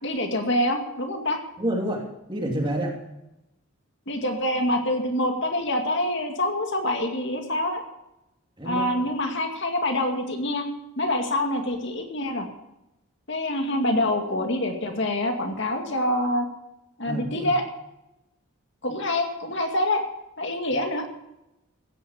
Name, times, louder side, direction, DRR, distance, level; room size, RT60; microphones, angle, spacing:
voice 1, 0.0-1.4 4.1-7.8 8.6-10.6 11.0-12.5 13.3-16.5 17.0-17.6 18.8-20.0 20.4-21.0, left 1 dB, 55° left, 3 dB, 2.3 m, -26 dB
voice 2, 1.6-3.0 8.6-9.0 17.0-17.5, right 1 dB, 20° right, 0 dB, 2.9 m, -29 dB
16.0 x 10.5 x 7.2 m, 0.91 s
head